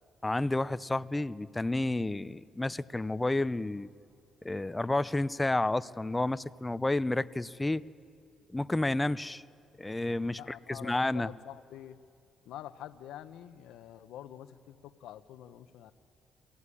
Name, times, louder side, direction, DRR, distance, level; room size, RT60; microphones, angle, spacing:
voice 1, 0.2-3.9 4.4-7.8 8.5-9.4 9.8-11.3, left 2 dB, 15° left, 16 dB, 0.5 m, -30 dB
voice 2, 10.3-12.0 12.5-15.9, left 11 dB, 85° left, 11 dB, 0.7 m, -47 dB
23.0 x 16.0 x 9.8 m, 2.4 s
cardioid pair, 90°, 0 cm